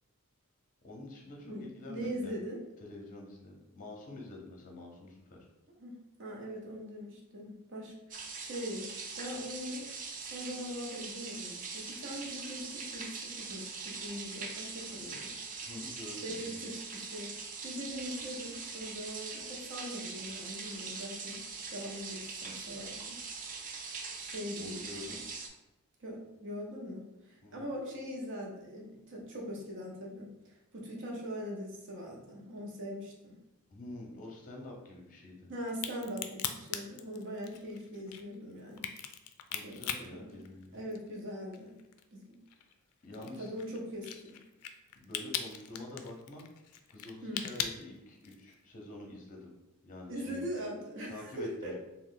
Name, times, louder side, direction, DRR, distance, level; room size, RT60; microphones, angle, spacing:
voice 1, 0.8-2.3 2.8-5.5 15.6-16.6 24.6-25.2 27.4-27.6 33.7-35.5 39.5-40.8 43.0-43.5 45.0-46.5 46.9-49.5 49.8-50.4 51.1-51.7, left 2 dB, 35° left, 0 dB, 0.7 m, -47 dB
voice 2, 1.4-2.6 5.8-8.9 9.2-9.9 10.3-15.4 16.2-17.3 17.6-23.2 24.1-24.9 26.0-30.3 30.7-33.4 35.5-38.9 39.5-40.3 40.7-41.7 42.1-42.4 43.2-44.4 47.2-47.5 50.1-51.7, equal, 60° right, -1 dB, 0.8 m, -41 dB
sound 1, 8.1-25.5, right 4 dB, 35° right, 0.4 m, -42 dB
Crack, 35.7-41.2 41.5-48.5, left 9 dB, 80° left, 0.3 m, -40 dB
3.0 x 2.3 x 3.7 m, 0.95 s
head